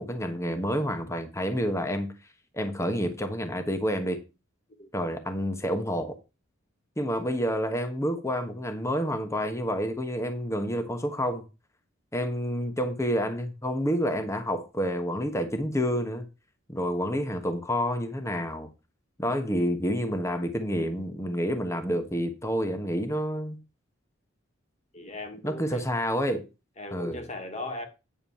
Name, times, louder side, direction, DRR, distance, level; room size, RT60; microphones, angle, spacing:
voice 1, 0.0-2.1 2.5-4.2 4.9-6.2 7.0-11.4 12.1-16.3 16.7-18.7 19.2-23.6 25.4-26.4 26.9-27.2, equal, 15° left, 1.1 m, -29 dB
voice 2, 24.9-25.8 26.8-27.9, left 2 dB, 35° left, 1.7 m, -38 dB
9.3 x 3.8 x 7.1 m
head